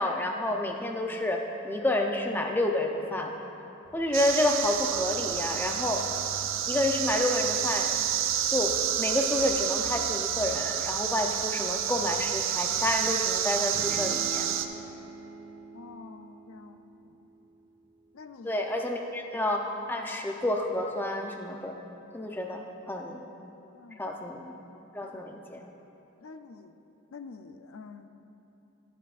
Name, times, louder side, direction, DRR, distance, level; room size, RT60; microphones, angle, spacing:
voice 1, 0.0-3.3 3.9-6.0 6.7-8.0 8.5-14.5 18.4-21.8 22.1-23.2 23.9-24.5 24.9-25.6, left 1 dB, 10° left, 2 dB, 0.5 m, -29 dB
sound 1, 3.8-13.4, equal, 65° left, 1.6 m, -49 dB
sound 2, 4.1-14.6, right 10 dB, 70° right, 0.4 m, -29 dB
sound 3, 13.7-17.5, right 2 dB, 55° right, 2.3 m, -43 dB
voice 2, 15.7-17.3 18.1-18.6 23.6-24.1 25.0-25.1 26.2-26.8 27.1-28.1, left 4 dB, 85° left, 9 dB, 0.4 m, -47 dB
19.5 x 7.1 x 2.5 m, 3.0 s
head